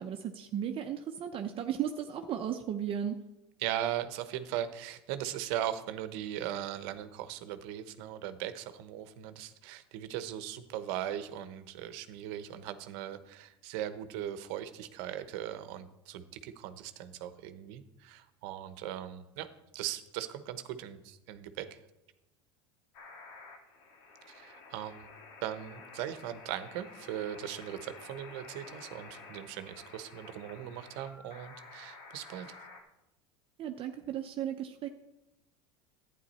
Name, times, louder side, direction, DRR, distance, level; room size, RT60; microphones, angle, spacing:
voice 1, 0.0-3.2 33.6-34.9, right 9 dB, 40° right, 5 dB, 0.8 m, -35 dB
voice 2, 3.6-19.5 19.7-21.8 24.3-25.1 25.4-32.6, right 11 dB, 70° right, 11 dB, 1.0 m, -39 dB
sound 1, 22.9-32.8, left 3 dB, 70° left, 2.0 m, -51 dB
11.5 x 9.3 x 4.2 m, 0.94 s
supercardioid pair, 100°, 14 cm